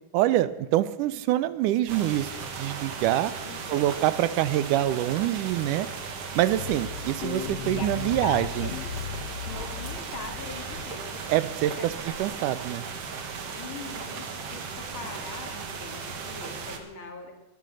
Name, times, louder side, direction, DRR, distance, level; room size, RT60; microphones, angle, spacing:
voice 1, 0.1-3.3 3.7-5.9 6.4-8.7 11.3-12.8, right 13 dB, 85° right, 16 dB, 2.2 m, -25 dB
sound 1, 1.9-16.8, right 5 dB, 55° right, 2.3 m, -37 dB
voice 2, 3.4-4.0 7.7-11.2 11.8-11.9 13.5-14.6 14.9-17.3, left 3 dB, 45° left, 2 dB, 2.8 m, -41 dB
sound 2, 6.5-11.2, left 10 dB, 80° left, 1.4 m, -37 dB
20.0 x 11.0 x 6.4 m, 0.99 s
omnidirectional pair, 3.6 m